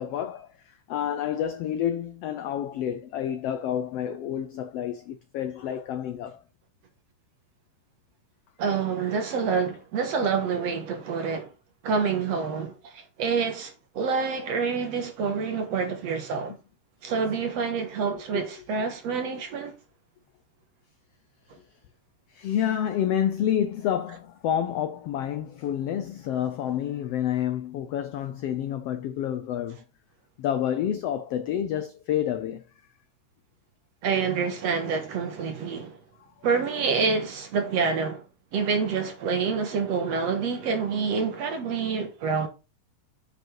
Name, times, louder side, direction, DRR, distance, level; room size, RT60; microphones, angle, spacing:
voice 1, 0.0-6.4 18.3-18.4 22.3-29.8 30.4-32.6 36.2-36.3, left 10 dB, 85° left, 1.3 m, -29 dB
voice 2, 8.6-11.5 11.8-16.5 17.0-19.8 34.0-36.0 36.4-38.2 38.5-42.5, right 5 dB, 60° right, 2.4 m, -27 dB
8.0 x 5.1 x 4.6 m
omnidirectional pair, 3.6 m